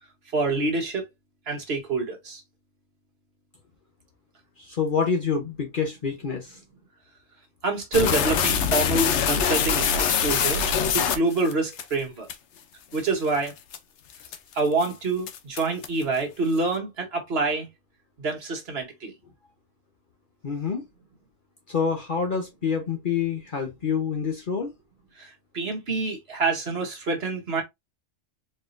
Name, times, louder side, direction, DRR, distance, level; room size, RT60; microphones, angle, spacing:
voice 1, 0.3-1.0 1.5-2.4 7.6-10.6 10.9-12.3 12.9-13.5 14.5-17.7 18.2-19.1 25.2-27.6, right 3 dB, 60° right, 1.4 m, -26 dB
voice 2, 4.6-6.6 20.4-20.8 21.7-24.7, left 6 dB, 45° left, 1.0 m, -27 dB
sound 1, 7.9-11.8 12.3-12.4 12.9-13.1 13.5-13.8 14.2-14.5 14.8-14.9 15.3-16.0, left 7 dB, 75° left, 0.9 m, -23 dB
4.2 x 3.5 x 2.5 m
omnidirectional pair, 1.2 m